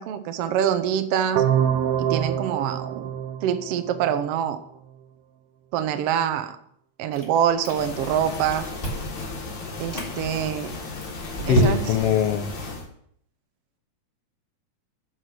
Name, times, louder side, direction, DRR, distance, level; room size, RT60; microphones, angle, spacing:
voice 1, 0.0-1.4 2.0-3.1 3.4-4.6 5.7-6.6 7.0-8.7 9.8-10.7 11.5-11.9, right 9 dB, 70° right, 9 dB, 1.5 m, -25 dB
sound 1, 1.4-4.3, right 9 dB, 90° right, 2.3 m, -25 dB
Chewing mastication, 7.1-8.1 8.3-9.2 9.7-10.1 10.7-12.1, equal, 20° left, 2.0 m, -28 dB
sound 2, 7.6-12.9, left 3 dB, 45° left, 1.8 m, -35 dB
voice 2, 11.5-12.5, left 8 dB, 75° left, 7 dB, 1.4 m, -22 dB
9.3 x 5.9 x 6.4 m, 0.68 s
omnidirectional pair, 3.5 m